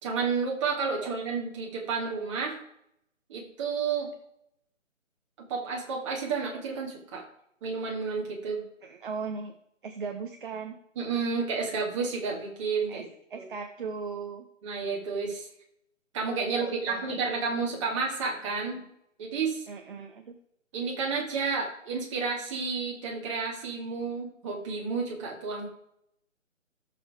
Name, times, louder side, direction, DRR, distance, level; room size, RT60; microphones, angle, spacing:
voice 1, 0.0-2.6 3.3-4.1 5.4-7.2 7.6-8.6 11.0-13.0 13.3-13.5 14.6-15.5 16.1-18.8 19.2-19.6 20.7-25.7, right 5 dB, 25° right, -1 dB, 2.3 m, -31 dB
voice 2, 8.8-9.5 9.8-10.8 12.9-13.0 13.3-14.4 16.6-17.3 19.7-20.3, right 5 dB, 40° right, 5 dB, 1.0 m, -38 dB
14.5 x 7.0 x 3.6 m, 0.76 s
figure-of-eight pair, 155°, 39 cm